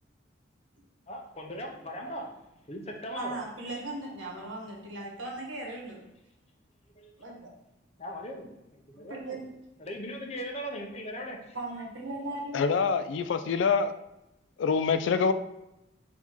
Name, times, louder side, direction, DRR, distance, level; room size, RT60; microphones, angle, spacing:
voice 1, 1.1-2.3 2.6-3.4 6.9-7.1 8.0-9.4 9.8-11.6, equal, 35° left, 0.6 m, -39 dB
voice 2, 3.2-6.0 7.2-7.5 9.1-9.5 11.5-12.6, right 2 dB, 80° right, 1.2 m, -38 dB
voice 3, 12.5-13.9 14.6-15.3, left 5 dB, 70° left, 0.3 m, -25 dB
4.4 x 2.8 x 4.3 m
head